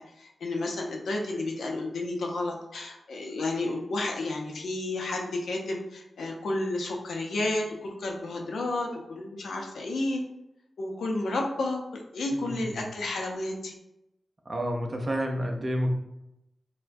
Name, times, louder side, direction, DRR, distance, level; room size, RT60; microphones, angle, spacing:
voice 1, 0.0-10.2 10.8-13.7, left 2 dB, 90° left, 1 dB, 0.6 m, -31 dB
voice 2, 12.3-12.9 14.5-15.9, equal, 30° right, 2 dB, 0.5 m, -30 dB
4.3 x 2.2 x 2.6 m, 0.87 s
wide cardioid pair, 150°, 0 cm